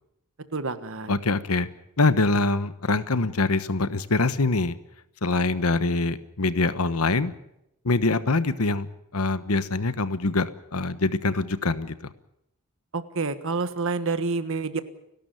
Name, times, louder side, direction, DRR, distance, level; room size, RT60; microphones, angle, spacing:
voice 1, 0.5-1.1 12.9-14.8, right 4 dB, 65° right, 11 dB, 1.4 m, -28 dB
voice 2, 1.1-1.7 2.0-4.8 5.2-7.3 7.8-8.9 9.1-11.9, left 3 dB, 90° left, 13 dB, 1.2 m, -24 dB
29.5 x 12.5 x 9.1 m, 0.82 s
head